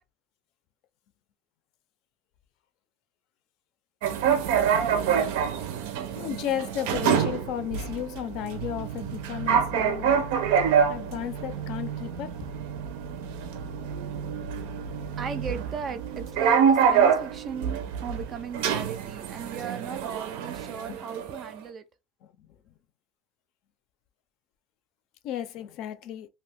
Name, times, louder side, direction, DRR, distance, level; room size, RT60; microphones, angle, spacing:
sound 1, 4.0-21.5, right 7 dB, 90° right, 0.6 m, -27 dB
voice 1, 6.2-10.2 10.9-12.5 25.2-26.3, left 10 dB, 55° left, 0.4 m, -34 dB
voice 2, 15.2-21.8, right 6 dB, 25° right, 0.3 m, -37 dB
2.6 x 2.4 x 3.5 m
cardioid pair, 170°, 0 cm